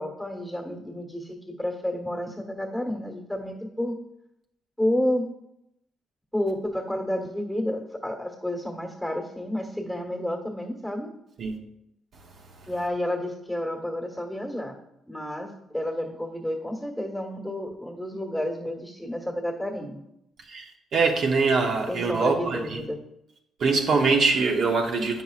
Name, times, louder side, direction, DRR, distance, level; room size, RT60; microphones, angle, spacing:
voice 1, 0.0-4.0 4.8-5.3 6.3-11.1 12.6-14.8 15.1-20.0 21.9-23.0, left 1 dB, 5° left, 1.4 m, -30 dB
voice 2, 20.9-22.8 23.6-25.2, right 4 dB, 60° right, 0.8 m, -23 dB
9.0 x 5.6 x 2.4 m
cardioid pair, 90°, 0 cm